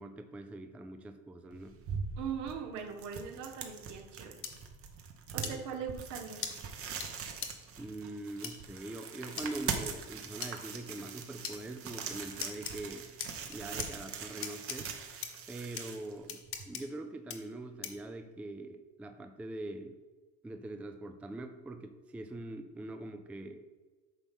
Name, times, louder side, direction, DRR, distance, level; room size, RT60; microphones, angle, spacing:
voice 1, 0.0-1.8 5.3-5.7 7.8-13.1 13.5-15.0 15.5-20.0 20.4-23.6, right 2 dB, 5° right, 7 dB, 0.3 m, -43 dB
sound 1, 1.5-16.7, right 6 dB, 45° right, 1.1 m, -42 dB
voice 2, 2.2-4.3 5.3-6.4, right 7 dB, 70° right, 4 dB, 1.4 m, -40 dB
sound 2, 4.4-4.5 5.4-5.5 6.4-6.5 7.0-7.1 7.4-7.5 8.4-8.5 9.4-9.5 10.4-10.5 11.4-11.6 12.4-12.7 13.2-13.9 14.4-14.8 15.2-15.3 15.8-15.9 16.3-16.8 17.3-17.4 17.8-18.1, left 7 dB, 40° left, 1.2 m, -38 dB
9.3 x 5.8 x 3.6 m, 1.3 s
cardioid pair, 125°, 32 cm